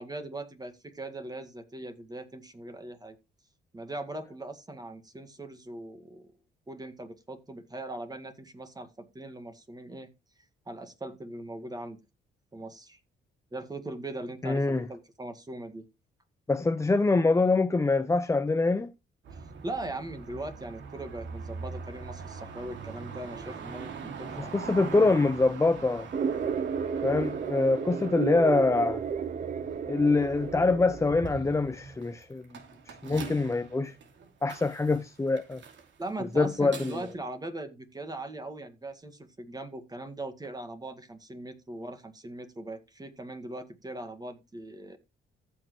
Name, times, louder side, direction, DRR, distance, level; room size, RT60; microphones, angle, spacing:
voice 1, 0.0-3.2 3.7-6.3 6.7-10.1 10.7-12.0 12.5-13.0 13.5-15.9 19.6-24.7 36.0-45.0, right 2 dB, 20° right, 1.9 m, -40 dB
voice 2, 14.4-14.8 16.5-18.9 24.4-26.1 27.0-29.0 29.9-32.4 32.9-33.9 34.4-35.6 36.3-36.9, left 3 dB, 15° left, 0.6 m, -25 dB
sound 1, 19.3-37.1, right 5 dB, 70° right, 2.6 m, -43 dB
sound 2, 26.1-31.1, right 6 dB, 40° right, 0.7 m, -32 dB
14.5 x 6.5 x 3.2 m
cardioid pair, 90°, 20 cm